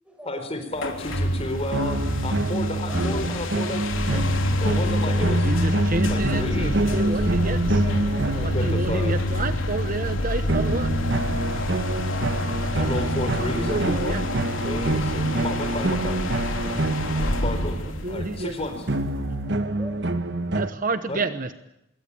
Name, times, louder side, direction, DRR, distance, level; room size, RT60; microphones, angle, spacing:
voice 1, 0.2-4.2 4.6-5.4 6.1-7.1 8.3-9.2 12.7-16.2 17.4-17.8 18.1-18.9 21.1-21.2, left 1 dB, 30° left, 7 dB, 4.3 m, -32 dB
sound 1, 0.8-19.3, left 1 dB, 85° left, 3.4 m, -27 dB
sound 2, 1.7-9.3 10.5-18.0 18.9-20.7, right 2 dB, 60° right, 1.3 m, -27 dB
voice 2, 2.8-3.3 3.7-3.8 4.1-5.4 6.9-8.6 8.8-9.1 16.6-17.4 19.2-20.0, equal, 5° right, 3 dB, 7.4 m, -44 dB
voice 3, 5.4-7.6 8.4-10.9 13.4-14.2 18.0-18.5 20.5-21.6, right 3 dB, 45° right, 10 dB, 1.0 m, -29 dB
25.5 x 22.5 x 8.6 m, 0.86 s
head